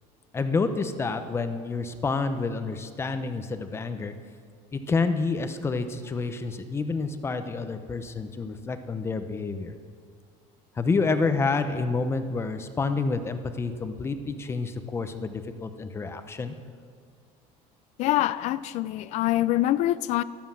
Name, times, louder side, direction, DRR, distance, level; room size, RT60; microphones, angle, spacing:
voice 1, 0.3-4.1 4.7-9.7 10.8-16.5, left 4 dB, 15° left, 9 dB, 0.9 m, -28 dB
voice 2, 18.0-20.2, left 14 dB, 50° left, 17 dB, 0.5 m, -25 dB
13.0 x 12.0 x 7.6 m, 2.1 s
cardioid pair, 155°, 15 cm